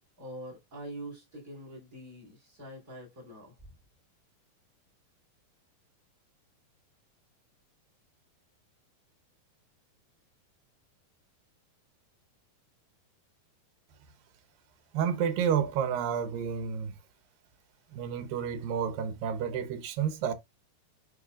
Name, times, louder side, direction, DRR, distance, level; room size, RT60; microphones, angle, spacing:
voice 1, 0.2-3.6, right 1 dB, 25° right, 3.1 m, -44 dB
voice 2, 14.9-17.0 17.9-20.3, right 8 dB, 90° right, 2.7 m, -30 dB
10.5 x 4.0 x 2.3 m
omnidirectional pair, 3.9 m